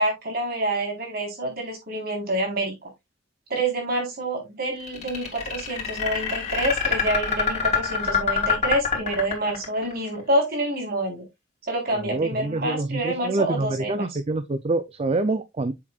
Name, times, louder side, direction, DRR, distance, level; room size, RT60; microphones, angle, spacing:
voice 1, 0.0-2.9 3.5-11.2 11.7-14.1, right 1 dB, 55° right, 4.2 m, -27 dB
sound 1, 4.9-9.9, left 6 dB, 40° left, 2.9 m, -25 dB
voice 2, 11.9-15.7, right 2 dB, 35° right, 0.5 m, -26 dB
7.7 x 7.1 x 2.4 m
head